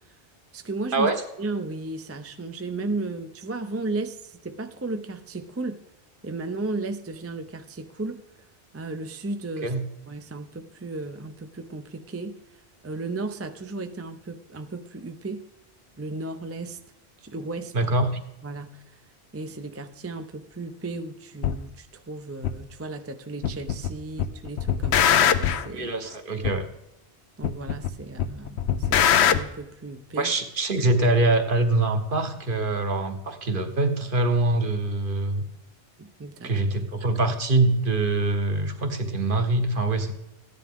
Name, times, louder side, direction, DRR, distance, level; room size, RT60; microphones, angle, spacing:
voice 1, 0.5-1.1 1.4-5.8 6.2-8.2 8.7-9.8 10.1-12.3 12.8-15.4 16.0-16.8 17.2-17.9 18.4-19.0 19.3-25.9 27.4-30.3 36.0-36.5, right 3 dB, 20° right, 7 dB, 0.5 m, -34 dB
voice 2, 17.7-18.1 25.7-26.7 30.2-35.4 36.4-40.1, right 2 dB, 55° right, 7 dB, 1.3 m, -24 dB
sound 1, 21.4-21.6 22.4-22.5 23.4-23.9 24.2-25.7 26.4-26.5 27.4-27.9 28.2-29.4, left 9 dB, 80° left, 0.9 m, -21 dB
14.5 x 10.0 x 3.6 m, 0.89 s
omnidirectional pair, 1.1 m